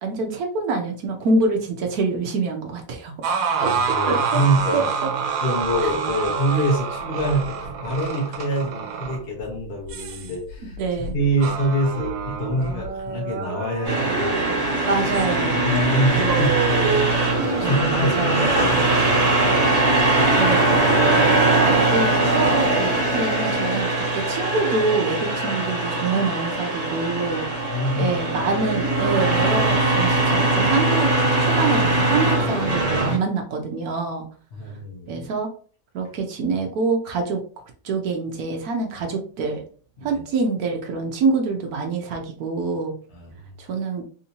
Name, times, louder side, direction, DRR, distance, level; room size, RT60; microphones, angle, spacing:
voice 1, 0.0-3.4 3.6-3.7 4.1-4.4 4.7-4.8 10.8-11.1 14.9-15.6 17.6-18.4 20.3-20.8 21.9-31.1 31.4-34.3 35.1-35.5 35.9-37.4 37.8-39.6 40.0-42.9 43.6-44.0, right 3 dB, 65° right, 3 dB, 1.0 m, -25 dB
sound 1, 3.2-14.7 15.1-15.3 15.7-17.6, right 5 dB, 80° right, 1.3 m, -27 dB
voice 2, 3.6-4.9 5.4-10.8 11.1-14.4 15.5-17.0 17.4-20.4 27.6-28.5 34.5-35.3 40.0-40.2 43.1-43.3, right 1 dB, 45° left, -2 dB, 0.8 m, -26 dB
sound 2, 13.8-33.2, right 2 dB, 45° right, 1.5 m, -21 dB
3.6 x 2.7 x 2.7 m, 0.43 s
omnidirectional pair, 2.0 m